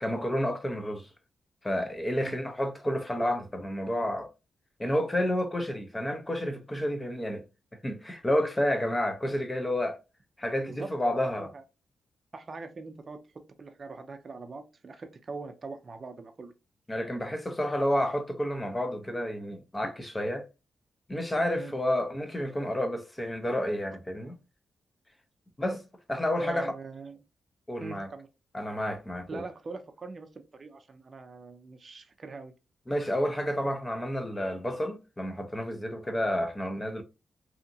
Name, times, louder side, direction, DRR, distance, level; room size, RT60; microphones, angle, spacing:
voice 1, 0.0-1.1 1.6-4.3 4.8-7.4 7.8-10.0 10.4-11.5 16.9-20.5 21.1-24.4 25.6-25.8 26.1-26.7 27.7-28.1 28.5-29.4 32.9-37.0, left 1 dB, 20° left, 0.7 m, -30 dB
voice 2, 10.6-11.6 12.3-16.5 21.6-21.7 26.4-27.2 27.8-28.3 29.3-32.5, right 3 dB, 45° right, 0.4 m, -42 dB
2.7 x 2.5 x 2.6 m
cardioid pair, 60°, 0 cm